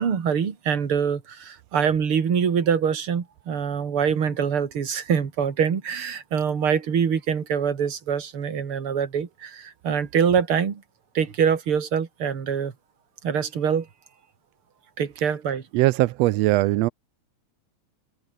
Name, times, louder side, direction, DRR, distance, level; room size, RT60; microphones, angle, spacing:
voice 1, 0.0-10.8 11.1-12.7 13.2-13.9 15.0-15.6, right 7 dB, 45° right, 3.0 m, -24 dB
voice 2, 15.7-16.9, right 18 dB, 80° right, 1.6 m, -20 dB
omnidirectional pair, 3.4 m